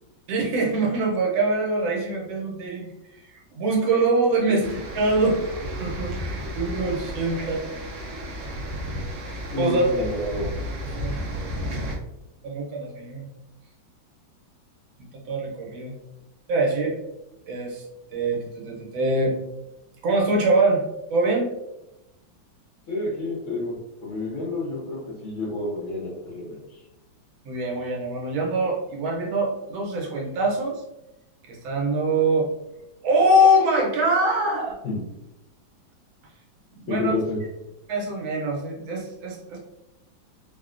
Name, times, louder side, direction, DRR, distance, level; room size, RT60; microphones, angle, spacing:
voice 1, 0.3-2.9 3.2-7.6 9.6-9.8 11.0-11.2 12.4-13.3 15.0-15.9 16.5-17.0 17.5-17.8 18.1-19.3 20.0-20.8 21.1-21.5 27.4-30.8 31.5-32.5 33.0-34.8 36.7-37.1 37.9-39.6, right 1 dB, 85° right, -1 dB, 1.6 m, -24 dB
sound 1, 4.6-12.0, equal, 70° right, 1.0 m, -33 dB
voice 2, 9.5-10.5 22.9-26.8 34.8-35.0 36.9-37.4, left 2 dB, 70° left, -5 dB, 0.7 m, -29 dB
3.7 x 2.1 x 2.4 m, 0.91 s
omnidirectional pair, 2.1 m